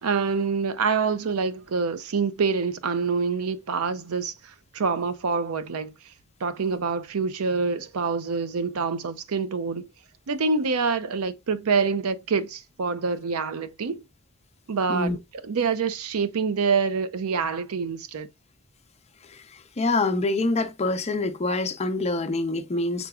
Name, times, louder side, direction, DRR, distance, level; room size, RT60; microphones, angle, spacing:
voice 1, 0.0-5.9 6.4-9.9 10.3-14.0 14.7-15.2 15.4-18.3, right 5 dB, 85° right, 0.5 m, -26 dB
voice 2, 19.3-23.1, left 2 dB, 30° left, 0.5 m, -26 dB
6.0 x 3.8 x 2.3 m
head